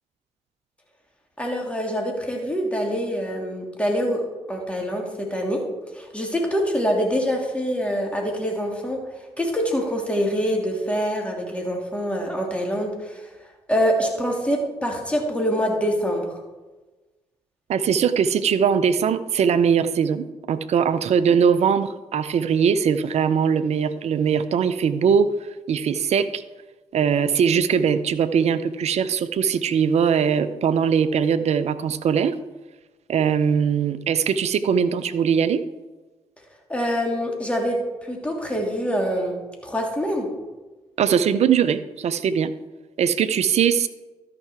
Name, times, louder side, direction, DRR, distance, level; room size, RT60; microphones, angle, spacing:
voice 1, 1.4-4.2 4.5-5.6 5.9-9.0 9.4-13.3 13.7-16.4 36.7-40.3, equal, 10° left, 0 dB, 3.1 m, -25 dB
voice 2, 17.7-25.3 25.7-26.4 26.9-32.3 33.1-35.6 41.0-42.5 43.0-43.9, right 7 dB, 55° right, 12 dB, 0.6 m, -21 dB
13.0 x 5.8 x 4.7 m, 1.2 s
hypercardioid pair, 40°, 13 cm